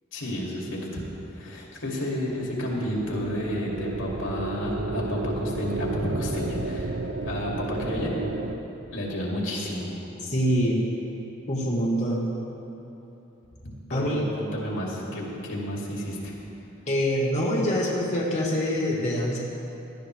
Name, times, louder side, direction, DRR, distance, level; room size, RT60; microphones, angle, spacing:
voice 1, 0.1-8.1 8.9-9.9 13.6-16.3, equal, 85° left, -3 dB, 2.4 m, -31 dB
sound 1, 2.4-8.5, right 2 dB, 55° right, 0.6 m, -32 dB
voice 2, 10.2-10.9 11.5-12.3 13.9-14.2 16.9-19.4, equal, 35° left, -4 dB, 1.3 m, -25 dB
17.0 x 12.0 x 3.3 m, 3.0 s
head